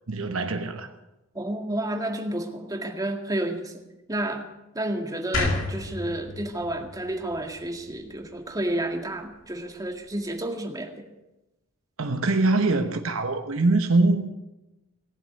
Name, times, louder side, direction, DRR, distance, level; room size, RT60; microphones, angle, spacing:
voice 1, 0.1-0.9 12.0-14.3, right 2 dB, 85° right, 1.1 m, -23 dB
voice 2, 1.3-3.8 4.1-4.5 4.7-10.9, right 1 dB, 20° right, 1.9 m, -30 dB
sound 1, 5.3-8.5, left 2 dB, 65° left, 2.6 m, -31 dB
18.5 x 7.6 x 9.5 m
head